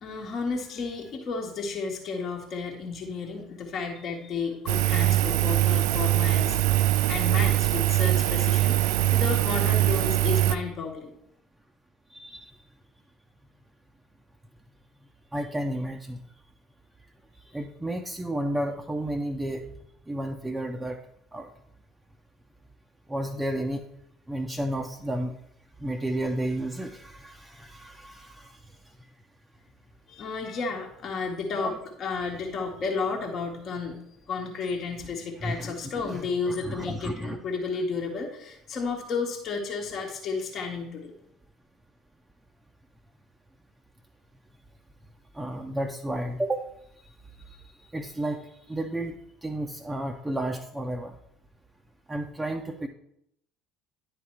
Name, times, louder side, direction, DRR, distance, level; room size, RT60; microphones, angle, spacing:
voice 1, 0.0-11.1 30.1-31.7 32.0-34.0 34.3-41.1, left 4 dB, 45° left, 0 dB, 1.2 m, -32 dB
Engine, 4.7-10.6, right 15 dB, 65° right, 0.3 m, -22 dB
voice 2, 12.1-12.5 15.3-16.2 17.5-19.6 20.1-21.0 21.3-21.5 23.1-23.8 24.3-25.3 25.8-28.5 31.6-31.8 35.4-37.4 45.3-46.7 47.9-51.1 52.1-52.9, right 1 dB, 10° right, 3 dB, 0.6 m, -32 dB
10.0 x 3.5 x 4.4 m, 0.73 s
figure-of-eight pair, 65°, 0 cm